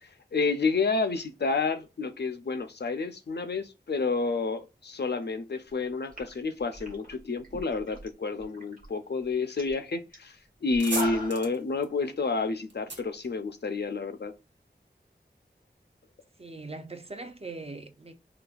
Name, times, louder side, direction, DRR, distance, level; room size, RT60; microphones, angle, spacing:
voice 1, 0.0-14.3, left 4 dB, 70° left, 0.4 m, -30 dB
sound 1, 6.1-8.1 8.4-8.9 9.2-9.3 9.6-9.8 10.1-10.2 10.7-11.5, left 1 dB, 50° right, 1.1 m, -39 dB
sound 2, 10.6-14.1, right 2 dB, 85° right, 0.9 m, -39 dB
voice 2, 16.4-18.1, right 3 dB, 35° right, 0.4 m, -41 dB
3.9 x 2.3 x 2.3 m
wide cardioid pair, 55°, 18 cm